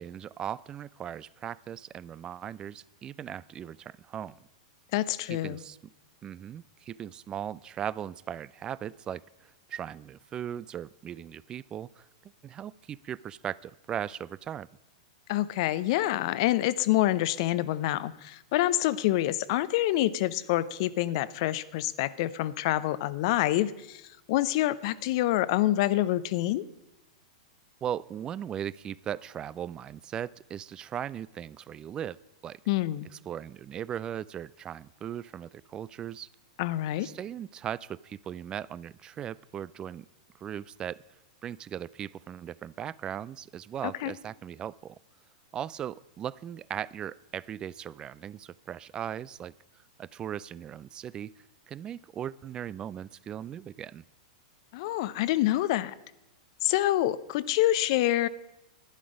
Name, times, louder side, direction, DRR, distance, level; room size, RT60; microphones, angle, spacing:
voice 1, 0.0-4.4 5.3-5.9 6.2-12.1 12.4-14.7 27.8-32.2 32.4-32.6 33.3-36.3 37.0-40.1 40.4-41.0 41.4-45.0 45.5-49.5 50.0-51.3 51.7-54.0, right 9 dB, 25° right, 21 dB, 0.3 m, -38 dB
voice 2, 4.9-5.6 15.3-24.0 24.3-26.6 32.7-33.1 36.6-37.1 44.0-44.1 54.7-55.9 56.6-58.3, left 15 dB, 55° left, 17 dB, 0.5 m, -27 dB
11.5 x 10.0 x 5.0 m, 0.93 s
hypercardioid pair, 110°, 3 cm